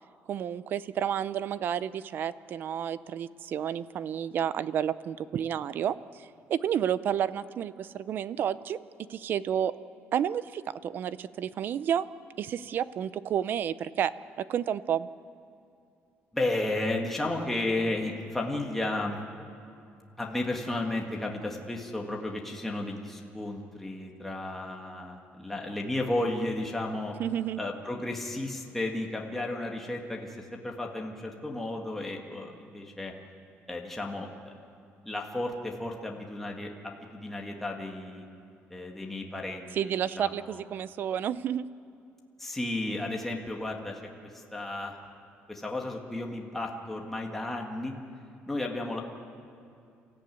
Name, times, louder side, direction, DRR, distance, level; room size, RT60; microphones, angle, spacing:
voice 1, 0.3-8.8 9.1-9.7 10.1-12.1 12.4-14.1 14.4-15.1 27.2-27.6 39.7-41.7, right 9 dB, 45° right, 16 dB, 0.6 m, -30 dB
voice 2, 16.3-19.2 20.2-27.1 27.6-33.1 33.7-34.5 35.1-38.3 38.7-40.6 42.4-44.0 44.3-45.0 45.5-47.9 48.5-49.0, left 2 dB, 5° left, 0 dB, 1.9 m, -33 dB
29.5 x 14.5 x 9.3 m, 2.5 s
cardioid pair, 170°, 5 cm